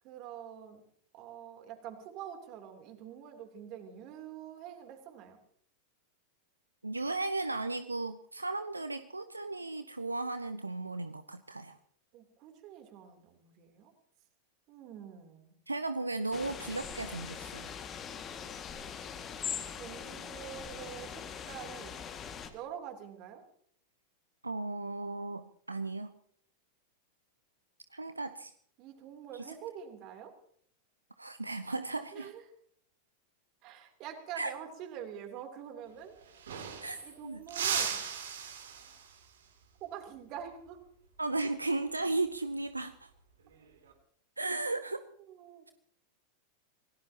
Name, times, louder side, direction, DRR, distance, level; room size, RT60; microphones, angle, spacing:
voice 1, 0.0-0.8 1.1-5.4 12.1-13.9 14.7-15.6 19.3-22.0 22.5-23.4 28.8-30.3 32.1-32.4 33.6-36.2 37.0-38.0 39.8-40.8 45.3-45.7, right 9 dB, 40° right, 5 dB, 3.2 m, -46 dB
voice 2, 6.8-11.8 15.7-17.7 24.4-26.1 27.9-28.5 29.3-29.5 31.2-32.3 34.4-34.5 36.8-37.4 41.2-43.1 44.4-45.0, right 2 dB, 80° right, 11 dB, 0.7 m, -35 dB
sound 1, 16.3-22.5, left 7 dB, 25° left, 2.0 m, -42 dB
sound 2, 35.9-36.0 36.2-37.1 37.5-39.3 41.7-42.0 43.4-43.9, right 7 dB, 65° right, 3.0 m, -36 dB
27.0 x 17.5 x 2.9 m, 0.63 s
figure-of-eight pair, 90°, 0 cm